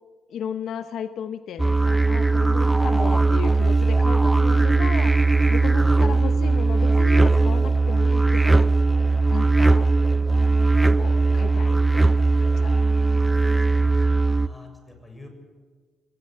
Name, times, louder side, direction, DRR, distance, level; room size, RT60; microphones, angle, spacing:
voice 1, 0.3-5.2 5.5-8.7 9.3-9.9 10.9-12.1 12.4-13.6, left 8 dB, 70° left, 10 dB, 0.9 m, -35 dB
sound 1, 1.6-14.5, right 3 dB, 10° right, 0.6 m, -19 dB
voice 2, 2.5-3.2 5.8-6.1 14.4-15.3, left 2 dB, 10° left, 4 dB, 6.8 m, -42 dB
21.5 x 17.5 x 7.8 m, 1.5 s
cardioid pair, 90°, 0 cm